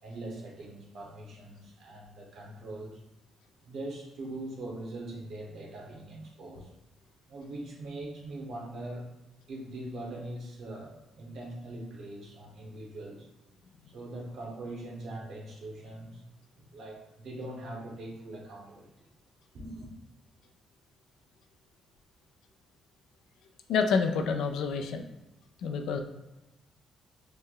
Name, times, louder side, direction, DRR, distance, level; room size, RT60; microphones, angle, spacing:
voice 1, 0.0-3.0 3.6-6.7 7.3-9.1 9.5-13.2 13.9-16.2 16.6-19.1 19.5-19.9, right 1 dB, 70° right, -1 dB, 0.9 m, -42 dB
voice 2, 23.7-25.0 25.6-26.0, left 5 dB, 80° left, 5 dB, 0.3 m, -28 dB
3.2 x 2.1 x 3.6 m, 0.99 s
cardioid pair, 90°, 0 cm